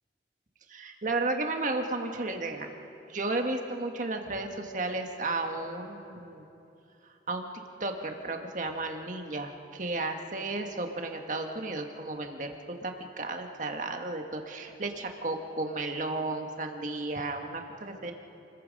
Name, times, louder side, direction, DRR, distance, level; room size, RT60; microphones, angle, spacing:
voice 1, 0.7-2.7 3.1-6.5 7.3-7.5 7.8-12.5 12.8-18.1, right 2 dB, 45° right, 4 dB, 1.7 m, -33 dB
29.0 x 21.0 x 5.4 m, 2.9 s
head